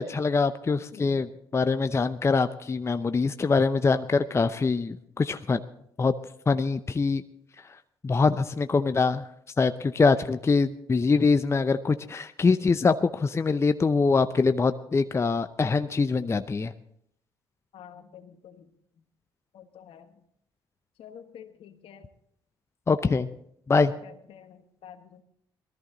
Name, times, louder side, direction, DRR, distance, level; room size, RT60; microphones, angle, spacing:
voice 1, 0.0-5.6 6.0-6.1 6.5-7.2 8.0-9.2 9.6-16.7 22.9-23.3 23.7-23.9, left 4 dB, 25° left, 10 dB, 0.6 m, -24 dB
voice 2, 0.9-1.3 17.7-18.7 19.5-20.2 21.0-22.1 23.0-23.1 23.7-25.2, left 8 dB, 65° left, 8 dB, 1.4 m, -48 dB
18.5 x 13.5 x 3.9 m, 0.72 s
supercardioid pair, 60°, 10 cm